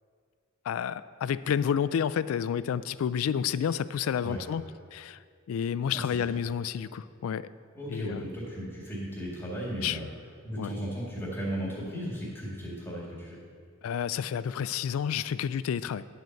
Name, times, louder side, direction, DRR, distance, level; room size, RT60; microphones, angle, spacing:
voice 1, 0.7-4.6 4.9-5.2 5.5-7.5 7.9-8.2 9.8-10.0 10.6-10.7 13.8-16.0, left 8 dB, 90° left, 16 dB, 0.3 m, -30 dB
voice 2, 5.9-6.3 7.7-10.0 10.4-13.4, equal, 10° left, -6 dB, 2.0 m, -36 dB
10.5 x 4.5 x 6.5 m, 2.1 s
head